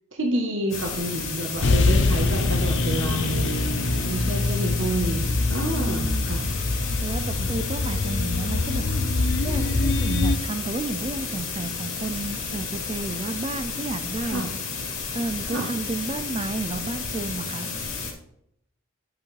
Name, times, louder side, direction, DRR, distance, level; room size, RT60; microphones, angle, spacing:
voice 1, 0.1-6.4 7.4-7.5 14.3-14.5 15.5-15.7, right 1 dB, 65° right, 0 dB, 1.1 m, -29 dB
sound 1, 0.7-18.1, left 4 dB, 75° left, 2.5 m, -32 dB
sound 2, 1.6-10.4, left 2 dB, 55° left, 0.6 m, -24 dB
voice 2, 5.7-6.3 7.0-8.9 9.4-14.5 15.1-17.7, right 2 dB, 25° right, 11 dB, 0.4 m, -32 dB
10.5 x 5.8 x 3.3 m, 0.73 s
head